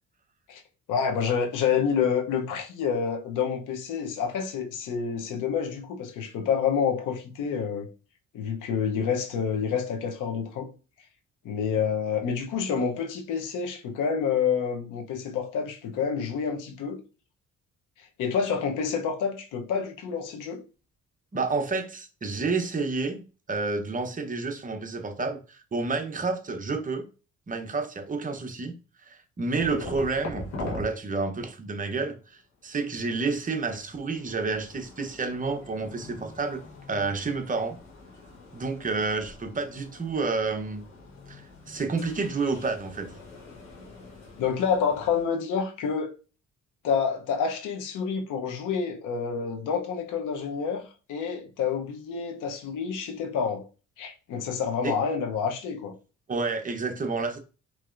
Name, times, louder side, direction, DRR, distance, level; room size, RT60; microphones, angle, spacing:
voice 1, 0.9-7.9 8.3-10.7 11.4-17.0 18.2-20.6 29.7-29.9 44.4-46.1 46.8-50.8 51.1-53.6 54.0-55.9, left 6 dB, 85° left, 0.9 m, -28 dB
voice 2, 21.3-23.2 23.5-27.1 27.5-28.7 29.0-32.2 32.6-36.6 36.9-37.8 38.5-40.8 41.3-43.2 54.8-55.0 56.3-57.4, right 4 dB, 25° right, 0.8 m, -29 dB
sound 1, 29.6-30.9 32.5-45.2, left 3 dB, 65° left, 1.2 m, -44 dB
4.6 x 2.9 x 2.5 m
cardioid pair, 90°, 30 cm